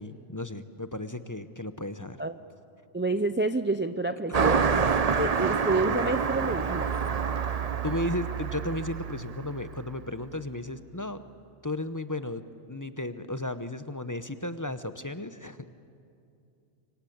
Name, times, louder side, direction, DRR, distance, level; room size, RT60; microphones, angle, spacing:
voice 1, 0.0-2.2 4.4-4.7 7.8-11.2 11.6-15.7, left 1 dB, 20° left, 11 dB, 0.7 m, -34 dB
voice 2, 2.9-6.9, right 2 dB, 15° right, 10 dB, 0.3 m, -29 dB
Car passing by, 4.3-10.2, right 6 dB, 40° right, 0.7 m, -28 dB
26.5 x 24.0 x 8.6 m, 2.6 s
omnidirectional pair, 1.2 m